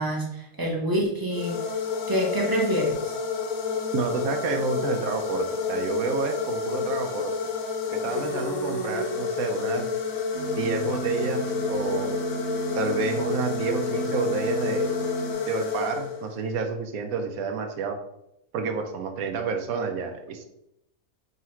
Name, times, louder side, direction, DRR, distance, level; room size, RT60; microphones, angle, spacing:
voice 1, 0.0-1.6 2.1-3.1, equal, 20° right, -2 dB, 0.7 m, -26 dB
sound 1, 1.3-16.5, left 5 dB, 75° left, 1.1 m, -29 dB
voice 2, 3.9-7.3 7.9-9.8 10.6-12.1 12.7-14.9 15.5-18.0 18.5-20.5, right 5 dB, 80° right, 5 dB, 1.0 m, -29 dB
sound 2, 10.3-15.3, right 3 dB, 40° right, 1.1 m, -34 dB
3.9 x 2.4 x 4.3 m, 0.82 s
omnidirectional pair, 1.5 m